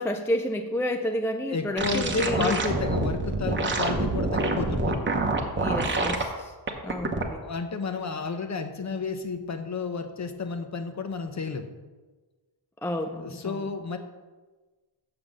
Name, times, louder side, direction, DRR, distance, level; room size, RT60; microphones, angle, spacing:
voice 1, 0.0-2.6 5.5-6.5 6.8-7.4 12.8-13.7, left 1 dB, 5° left, 6 dB, 0.3 m, -30 dB
voice 2, 1.5-5.0 7.4-11.7 13.2-14.0, left 4 dB, 35° left, 8 dB, 0.8 m, -31 dB
sound 1, 1.8-6.2 6.7-7.2, right 2 dB, 25° right, 1.0 m, -26 dB
6.9 x 5.9 x 7.3 m, 1.3 s
wide cardioid pair, 135°, 47 cm